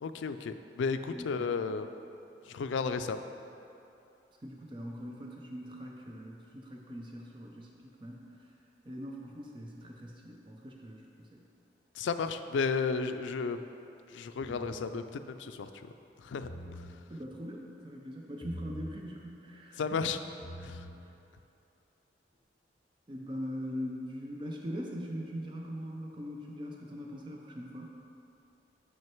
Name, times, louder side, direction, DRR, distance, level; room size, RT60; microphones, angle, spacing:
voice 1, 0.0-1.9 2.5-3.2 12.0-13.7 14.1-15.9 16.2-16.5 19.8-20.2 20.6-20.8, left 5 dB, 85° left, 10 dB, 0.3 m, -33 dB
voice 2, 1.1-1.5 4.4-8.3 8.8-11.4 17.1-20.3 21.0-21.1 23.1-27.8, equal, 25° right, -1 dB, 0.5 m, -42 dB
sound 1, 14.4-14.9 16.3-16.9 18.4-19.0 20.3-20.9, equal, 15° left, 1.1 m, -44 dB
6.3 x 5.6 x 4.5 m, 2.8 s
head